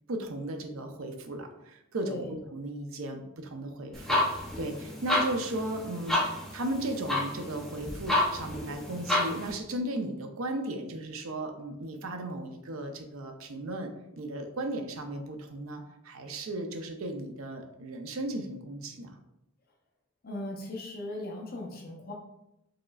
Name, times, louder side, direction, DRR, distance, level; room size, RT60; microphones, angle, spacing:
voice 1, 0.1-2.2 2.5-13.9 14.2-19.2, right 1 dB, 80° right, 5 dB, 0.6 m, -36 dB
sound 1, 3.9-9.5, left 1 dB, ahead, 0.6 m, -30 dB
voice 2, 20.2-22.1, left 1 dB, 45° left, 0 dB, 0.6 m, -38 dB
4.8 x 3.0 x 2.3 m, 0.86 s
head